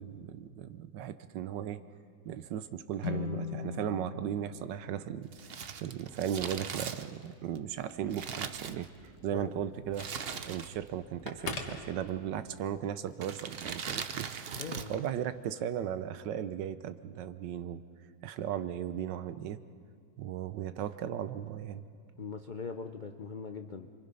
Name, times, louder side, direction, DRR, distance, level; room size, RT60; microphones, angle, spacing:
voice 1, 0.0-1.8 2.3-5.3 5.8-8.9 9.2-10.1 10.5-17.8 18.2-19.6 20.2-21.8, right 10 dB, 75° right, 12 dB, 1.4 m, -36 dB
sound 1, 3.0-6.3, left 8 dB, 60° left, 1.3 m, -41 dB
Crumpling crinkling, 5.3-9.3 9.9-11.0 11.2-11.3 12.1-12.5 13.1-15.1 15.3-15.4, right 6 dB, 55° right, 0.6 m, -40 dB
Telephone, 7.9-12.6, left 3 dB, 40° left, 1.7 m, -46 dB
voice 2, 14.6-15.1 22.2-23.9, left 5 dB, 80° left, 6 dB, 0.4 m, -41 dB
29.5 x 23.5 x 5.5 m, 2.2 s
omnidirectional pair, 2.0 m